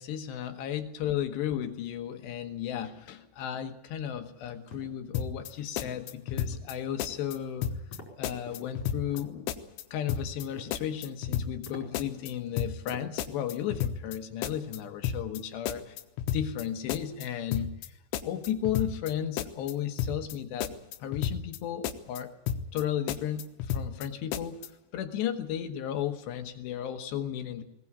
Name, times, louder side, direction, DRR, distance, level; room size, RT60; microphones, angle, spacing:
voice 1, 0.0-7.7 8.2-9.6 9.9-16.0 16.3-20.7 21.0-22.3 22.7-24.6 24.9-27.6, left 10 dB, 70° left, 6 dB, 3.2 m, -34 dB
sound 1, 4.3-4.9 5.4-5.6 5.8-6.1 6.5-6.8 7.2-7.5 7.9-8.1 8.4-9.3 10.2-10.8 11.2-11.3 11.6-11.8 12.5-12.6 12.9-13.1 13.4-13.8, left 2 dB, 35° left, 5.1 m, -48 dB
sound 2, 5.1-5.5 5.8-6.7 7.0-7.4 7.6-8.0 8.2-9.2 9.5-9.8 10.1-10.4 10.7-11.7 11.9-12.3 12.6-12.9 13.2-14.2 14.4-14.8 15.0-15.4 15.7-16.6 16.9-17.3 17.5-17.9 18.1-19.1 19.4-19.7 20.0-20.3 20.6-21.6 21.8-22.2 22.5-22.8 23.1-24.1 24.3-24.7, left 8 dB, 90° left, 3.5 m, -32 dB
20.5 x 19.0 x 8.5 m, 0.85 s
omnidirectional pair, 5.5 m